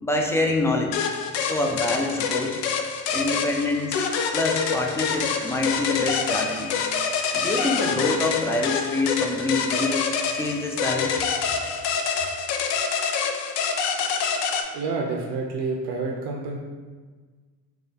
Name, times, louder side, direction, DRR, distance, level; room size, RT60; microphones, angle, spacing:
voice 1, 0.0-1.0 1.4-2.6 3.1-4.1 4.3-6.7 7.3-10.1 10.3-11.2, left 2 dB, 5° left, 1 dB, 0.4 m, -26 dB
sound 1, 0.9-14.6, left 6 dB, 85° left, 0.5 m, -26 dB
voice 2, 14.7-16.6, right 3 dB, 90° right, 0 dB, 0.6 m, -28 dB
3.5 x 2.4 x 4.1 m, 1.4 s
cardioid pair, 90°, 39 cm